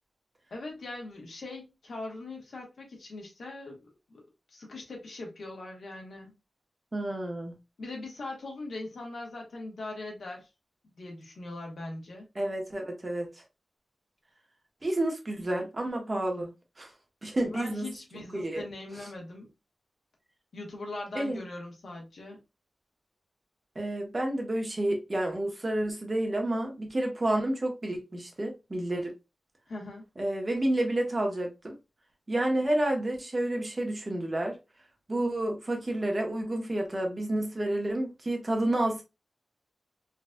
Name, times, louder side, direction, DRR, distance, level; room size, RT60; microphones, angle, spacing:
voice 1, 0.5-4.2 4.5-6.4 7.8-10.5 11.0-12.2 17.5-19.5 20.5-22.4 29.7-30.1, left 2 dB, 80° left, 1.3 m, -41 dB
voice 2, 6.9-7.5 12.3-13.3 14.8-16.5 16.8-16.9 17.2-17.9 18.3-18.6 21.1-21.4 23.7-29.1 30.2-31.8 32.3-34.6 35.1-39.0, right 1 dB, 35° right, 1.1 m, -30 dB
3.8 x 2.5 x 2.2 m
wide cardioid pair, 75°, 0 cm